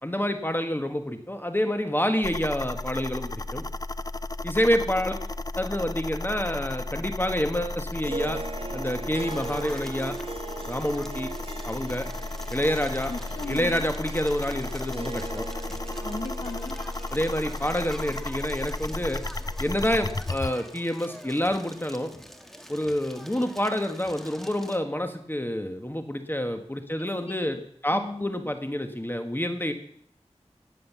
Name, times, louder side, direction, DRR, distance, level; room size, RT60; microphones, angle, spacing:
voice 1, 0.0-3.7 4.4-5.2 5.6-8.4 8.7-10.1 10.7-11.3 11.6-12.1 12.5-13.1 13.5-15.4 17.1-19.2 19.6-22.1 22.7-27.6 27.8-29.7, left 1 dB, 20° left, 6 dB, 1.4 m, -28 dB
sound 1, 2.2-20.5, left 2 dB, 35° left, 0.5 m, -34 dB
Harp, 8.0-20.6, right 3 dB, 55° right, 0.9 m, -41 dB
Crackle, 9.3-24.8, equal, 5° left, 1.6 m, -46 dB
voice 2, 13.1-13.9 16.0-16.8 27.3-27.5 27.9-28.3, left 3 dB, 55° left, 7 dB, 0.9 m, -36 dB
19.0 x 7.6 x 7.3 m, 0.65 s
wide cardioid pair, 45°, 11 cm